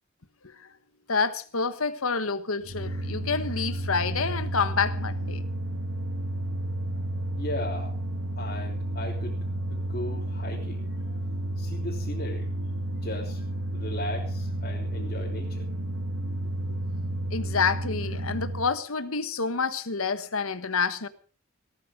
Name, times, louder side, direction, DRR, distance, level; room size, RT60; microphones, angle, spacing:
voice 1, 1.1-5.4 17.3-21.1, left 5 dB, 80° left, 1.4 m, -28 dB
sound 1, 2.6-18.7, right 1 dB, 70° right, 2.4 m, -31 dB
voice 2, 7.4-7.9 8.4-9.4 9.7-12.5 12.9-13.4 13.7-15.7, left 1 dB, 45° left, 3.2 m, -37 dB
18.0 x 13.0 x 5.2 m
head